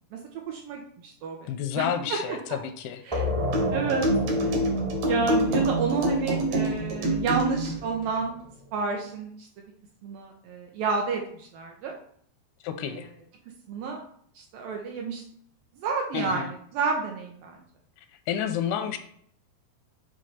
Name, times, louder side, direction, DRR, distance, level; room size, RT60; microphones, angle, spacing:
voice 1, 0.5-2.6 3.1-3.3 3.7-4.1 4.4-4.6 5.1-8.4 8.7-9.5 10.0-11.9 12.9-13.0 13.7-14.0 14.4-15.2 15.8-17.6, right 4 dB, 75° right, 1 dB, 2.2 m, -30 dB
voice 2, 1.5-3.0 12.6-13.1 16.1-16.5 18.3-19.0, left 9 dB, 85° left, 9 dB, 2.6 m, -30 dB
sound 1, 3.1-8.4, left 1 dB, 40° right, 0.4 m, -33 dB
sound 2, 3.5-7.8, right 1 dB, 55° right, 2.2 m, -26 dB
7.8 x 3.2 x 5.5 m, 0.63 s
omnidirectional pair, 4.6 m